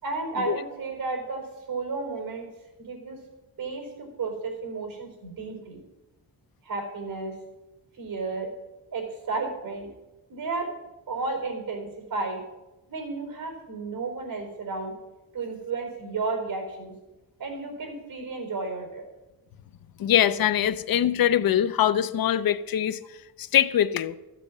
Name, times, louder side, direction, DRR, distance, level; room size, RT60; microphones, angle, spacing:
voice 1, 0.0-2.5 2.8-3.2 3.6-5.8 6.6-7.3 8.0-8.5 8.9-9.9 10.3-10.7 11.1-12.4 12.9-14.9 15.3-16.9 17.4-19.0, right 3 dB, 70° right, 4.5 m, -32 dB
voice 2, 20.0-23.0 23.4-24.1, left 10 dB, 75° left, 0.6 m, -23 dB
14.0 x 7.7 x 7.3 m
wide cardioid pair, 180°, 36 cm